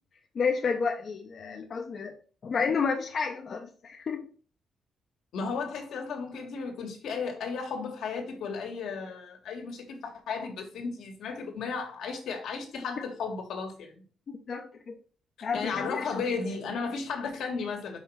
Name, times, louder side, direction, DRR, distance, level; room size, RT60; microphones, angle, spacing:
voice 1, 0.3-2.2 2.4-4.3 14.3-14.9 15.4-16.2, left 5 dB, 40° left, 0.8 m, -31 dB
voice 2, 5.3-14.0 15.4-18.0, left 5 dB, 80° left, 2.1 m, -34 dB
5.7 x 4.5 x 5.8 m
cardioid pair, 150°, 0 cm